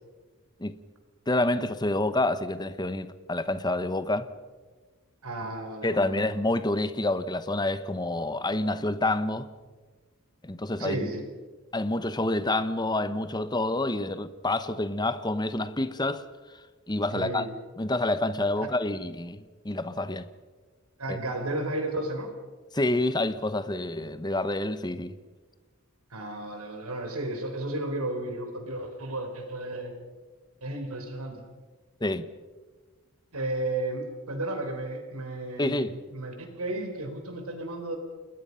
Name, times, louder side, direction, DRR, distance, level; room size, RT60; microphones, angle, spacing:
voice 1, 1.3-4.3 5.8-9.5 10.4-11.1 11.7-16.3 16.9-17.4 17.8-20.3 21.1-21.2 22.7-25.2 32.0-32.3 35.6-36.0, left 2 dB, 20° left, 1.0 m, -28 dB
voice 2, 5.2-6.2 10.8-11.2 17.1-17.5 21.0-22.3 26.1-29.9 30.6-31.4 33.3-38.0, right 2 dB, 90° right, 4.6 m, -33 dB
30.0 x 20.5 x 5.7 m
head